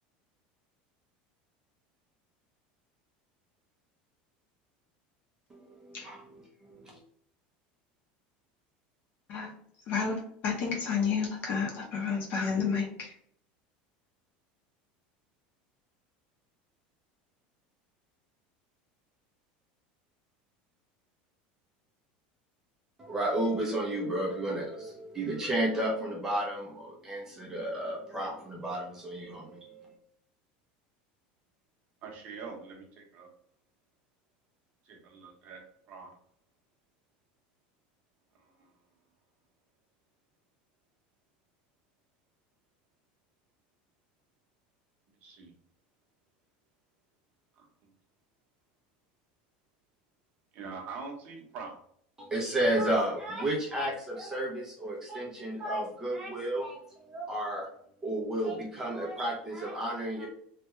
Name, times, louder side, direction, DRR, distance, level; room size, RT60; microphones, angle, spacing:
voice 1, 5.5-7.0 23.0-30.0 52.2-57.7 58.0-60.3, right 1 dB, 15° right, 0.8 m, -32 dB
voice 2, 9.9-13.1, left 6 dB, 45° left, 0.9 m, -31 dB
voice 3, 32.0-33.3 34.8-36.2 38.3-38.8 45.2-45.5 47.6-47.9 50.5-51.8, right 4 dB, 40° right, 1.0 m, -44 dB
3.3 x 2.3 x 3.1 m
supercardioid pair, 155°, 4 cm